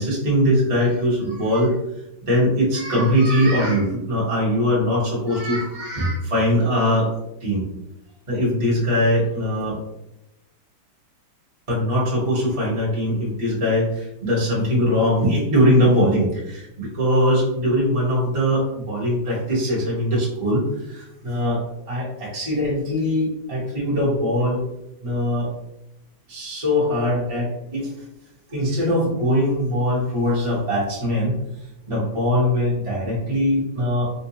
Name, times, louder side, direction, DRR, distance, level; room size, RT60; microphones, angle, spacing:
voice 1, 0.0-1.7 2.2-7.1 7.4-7.6 8.3-9.7 11.7-24.6 25.0-25.5 26.3-27.9 28.5-31.4 31.9-34.0, equal, 30° right, -7 dB, 0.6 m, -21 dB
3.7 x 2.6 x 2.8 m, 0.88 s
omnidirectional pair, 2.4 m